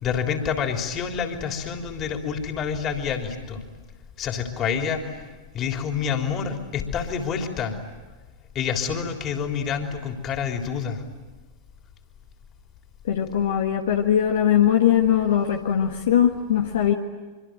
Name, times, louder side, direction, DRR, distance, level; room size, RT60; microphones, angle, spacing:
voice 1, 0.0-3.6 4.2-5.1 5.5-7.8 8.5-11.0, left 7 dB, 30° left, 4 dB, 3.5 m, -27 dB
voice 2, 13.1-16.9, left 9 dB, 60° left, 3 dB, 1.6 m, -20 dB
25.5 x 25.0 x 9.2 m, 1.3 s
figure-of-eight pair, 90°, 0 cm